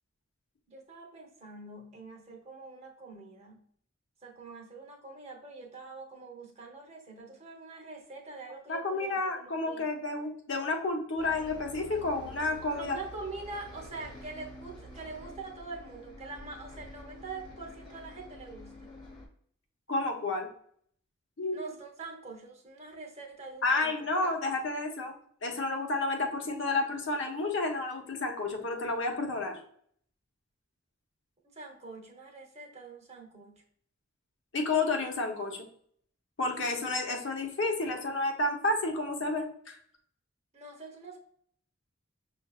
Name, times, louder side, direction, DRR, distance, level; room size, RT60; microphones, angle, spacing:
voice 1, 0.7-3.6 4.2-9.9 12.8-18.9 21.5-23.9 31.4-33.6 40.5-41.2, right 3 dB, 30° right, 0 dB, 0.8 m, -44 dB
voice 2, 8.7-13.0 19.9-20.5 21.4-21.6 23.6-29.6 34.5-35.7 36.4-39.8, left 2 dB, 65° left, 2 dB, 0.8 m, -31 dB
Bus, 11.2-19.3, left 1 dB, 25° left, 1.2 m, -48 dB
6.0 x 2.5 x 2.3 m, 0.62 s
head